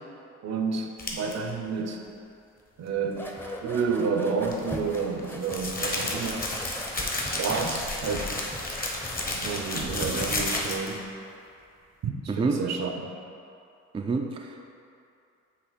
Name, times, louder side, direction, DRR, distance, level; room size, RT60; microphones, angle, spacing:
voice 1, 0.4-2.0 2.8-3.2 3.6-6.8 7.4-8.3 9.3-11.0 12.0-13.1, right 5 dB, 60° right, 3 dB, 0.7 m, -30 dB
sound 1, 1.0-1.3 4.4-11.0, left 2 dB, 30° left, 1.0 m, -31 dB
sound 2, 3.1-10.9, equal, 5° left, 0.7 m, -40 dB
voice 2, 12.3-12.7 13.9-14.7, right 4 dB, 20° right, 2 dB, 0.4 m, -28 dB
7.8 x 3.0 x 4.1 m, 2.6 s
cardioid pair, 90°, 30 cm